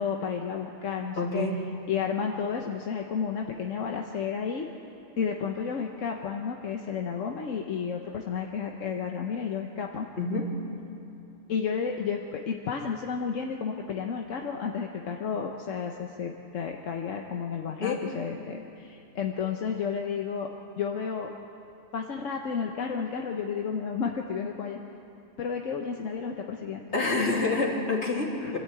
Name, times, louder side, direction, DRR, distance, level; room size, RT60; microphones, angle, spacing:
voice 1, 0.0-1.5 1.9-4.7 5.2-10.1 11.5-21.3 21.9-24.8 25.4-26.8 28.4-28.5, left 6 dB, 90° left, 2 dB, 1.4 m, -32 dB
voice 2, 1.2-1.6 10.2-10.5 17.8-18.0 26.9-28.6, left 3 dB, 65° left, -2 dB, 3.2 m, -27 dB
25.5 x 13.0 x 8.7 m, 2.8 s
omnidirectional pair, 1.3 m